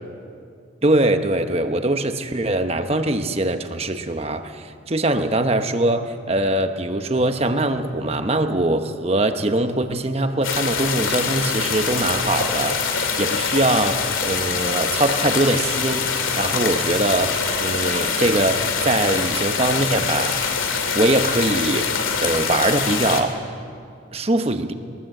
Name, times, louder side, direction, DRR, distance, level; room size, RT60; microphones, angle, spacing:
voice 1, 0.8-16.1 16.4-20.4 20.9-21.9 22.2-23.4 24.1-24.7, right 2 dB, 30° right, 7 dB, 1.0 m, -22 dB
sound 1, 10.4-23.2, left 5 dB, 90° left, 2.5 m, -24 dB
22.0 x 19.5 x 7.8 m, 2.4 s
head